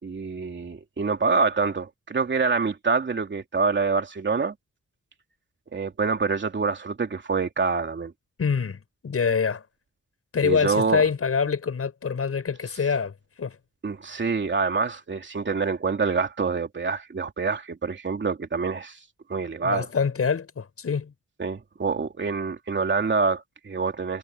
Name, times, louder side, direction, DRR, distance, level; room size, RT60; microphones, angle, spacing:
voice 1, 0.0-4.5 5.7-8.1 10.4-11.0 13.8-19.0 19.3-19.9 21.4-24.2, right 4 dB, 40° right, 2.9 m, -26 dB
voice 2, 8.4-9.6 10.3-13.1 13.4-13.6 19.6-21.1, left 6 dB, 50° left, 7.7 m, -25 dB
wide cardioid pair, 140°, 29 cm